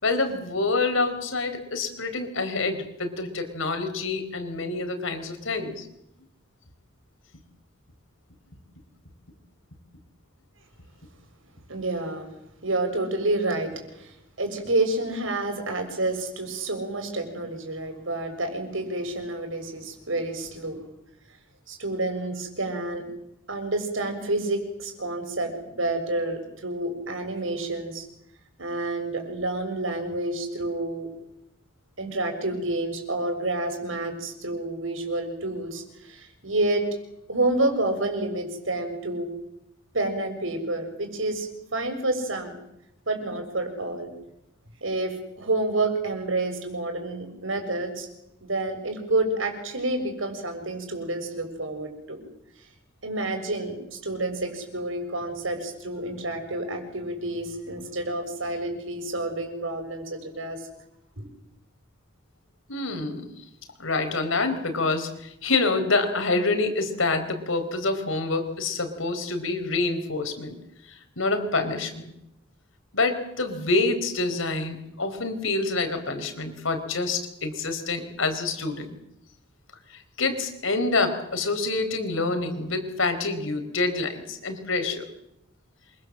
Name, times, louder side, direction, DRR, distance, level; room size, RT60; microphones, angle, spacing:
voice 1, 0.0-5.9 62.7-63.3 63.8-70.5 70.9-72.1 72.9-78.9 79.9-85.1, left 3 dB, 90° left, 8 dB, 4.7 m, -27 dB
voice 2, 11.7-12.3 12.6-20.8 21.7-23.0 23.5-28.1 28.6-31.1 32.0-36.9 37.3-39.3 39.9-42.5 43.1-44.1 44.8-48.1 48.4-52.2 53.0-60.7 61.2-61.3, right 2 dB, 85° right, 6 dB, 6.9 m, -29 dB
27.5 x 24.5 x 7.8 m, 0.81 s
head